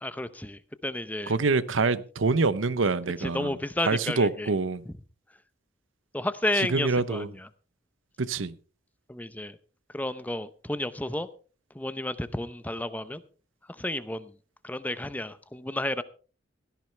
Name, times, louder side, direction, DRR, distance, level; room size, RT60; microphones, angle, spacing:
voice 1, 0.0-1.3 3.2-4.5 6.1-7.3 9.1-9.6 9.9-11.3 11.7-13.2 13.7-14.3 14.6-16.0, left 1 dB, 10° left, 0.6 m, -31 dB
voice 2, 1.3-3.6 3.8-4.8 6.5-7.3 8.2-8.6, right 3 dB, 90° right, 0.8 m, -26 dB
16.5 x 14.0 x 3.3 m
head